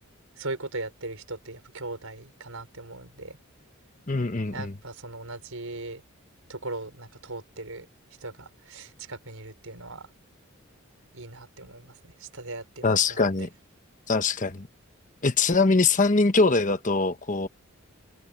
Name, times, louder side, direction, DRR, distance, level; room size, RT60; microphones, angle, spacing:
voice 1, 0.4-3.4 4.5-6.0 6.5-7.8 8.2-10.1 11.1-13.3, right 2 dB, 75° right, 5.0 m, -39 dB
voice 2, 4.1-4.7 12.8-13.5 14.1-14.7 15.2-17.5, left 3 dB, 35° left, 1.1 m, -23 dB
head